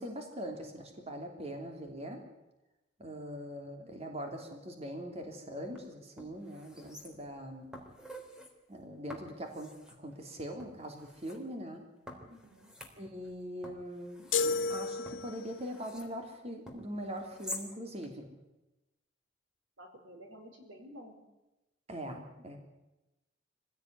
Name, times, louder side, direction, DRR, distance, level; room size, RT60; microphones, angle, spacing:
voice 1, 0.0-2.2 3.0-7.7 8.7-9.7 10.0-11.8 13.0-14.3 14.7-18.3 21.9-22.6, equal, 35° right, 3 dB, 3.2 m, -42 dB
sound 1, 5.6-5.8 6.2-7.4 7.7-8.5 9.1-10.0 10.6-11.4 12.1-13.3 13.6-16.1 16.7-17.7 18.0-18.1, left 1 dB, 5° right, 3.4 m, -48 dB
voice 2, 12.2-12.7 19.8-21.2, equal, 90° right, 4 dB, 5.1 m, -52 dB
sound 2, 14.3-15.7, left 4 dB, 85° left, 1.6 m, -32 dB
24.5 x 16.5 x 9.6 m, 0.99 s
head